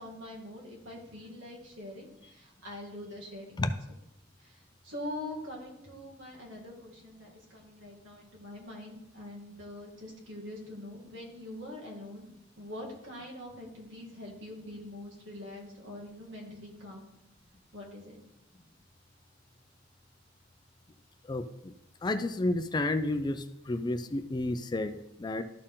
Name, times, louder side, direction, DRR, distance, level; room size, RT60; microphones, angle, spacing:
voice 1, 0.0-3.7 4.4-12.3 12.6-17.1 17.7-18.2, left 1 dB, 80° right, -2 dB, 2.3 m, -44 dB
voice 2, 21.3-21.7 22.0-25.4, left 2 dB, 20° left, 10 dB, 0.4 m, -31 dB
12.5 x 4.4 x 3.7 m, 0.87 s
head